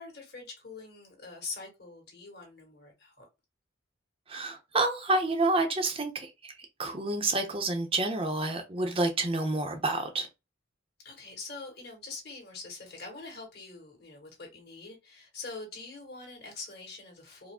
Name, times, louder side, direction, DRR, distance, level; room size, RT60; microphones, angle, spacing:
voice 1, 0.0-3.2 11.0-17.5, left 3 dB, 55° left, 2.1 m, -44 dB
voice 2, 4.3-6.5 6.8-10.3, right 2 dB, 30° right, 0.6 m, -29 dB
4.7 x 2.1 x 3.5 m
head